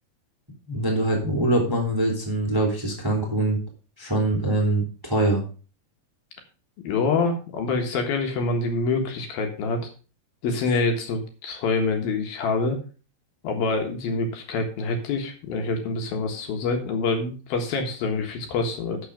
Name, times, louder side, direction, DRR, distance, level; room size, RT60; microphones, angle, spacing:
voice 1, 0.7-3.6 4.0-5.4, right 1 dB, 5° right, -1 dB, 2.2 m, -23 dB
voice 2, 6.8-9.8 10.4-12.8 13.4-19.0, left 3 dB, 70° left, 4 dB, 3.2 m, -26 dB
12.5 x 6.4 x 5.0 m, 0.36 s
omnidirectional pair, 4.7 m